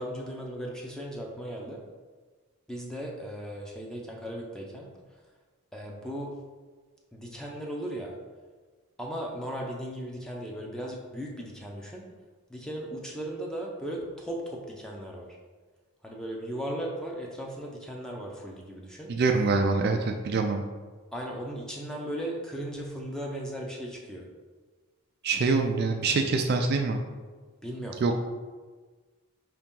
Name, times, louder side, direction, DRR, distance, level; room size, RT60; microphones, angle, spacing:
voice 1, 0.0-1.8 2.7-4.9 5.7-6.4 7.1-8.2 9.0-12.0 12.5-15.4 16.0-19.1 21.1-24.3 27.6-28.1, equal, 5° left, -2 dB, 0.6 m, -37 dB
voice 2, 19.1-20.6 25.2-27.0 28.0-28.1, right 4 dB, 45° right, 4 dB, 0.3 m, -25 dB
5.1 x 2.8 x 3.7 m, 1.4 s
head